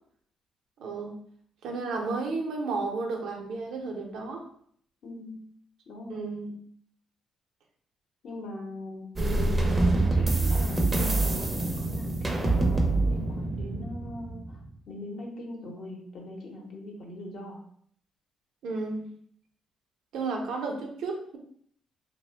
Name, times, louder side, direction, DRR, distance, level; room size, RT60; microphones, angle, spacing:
voice 1, 0.8-1.2 1.6-4.5 6.1-6.5 18.6-19.1 20.1-21.4, right 3 dB, 80° right, 1 dB, 0.6 m, -32 dB
voice 2, 5.0-5.4 5.9-6.3 8.2-9.1 9.3-14.6 14.9-17.6, left 2 dB, 65° left, 0 dB, 0.8 m, -41 dB
sound 1, 9.2-14.7, right 2 dB, 25° right, 0.5 m, -26 dB
2.8 x 2.0 x 3.2 m, 0.63 s
cardioid pair, 90°, 0 cm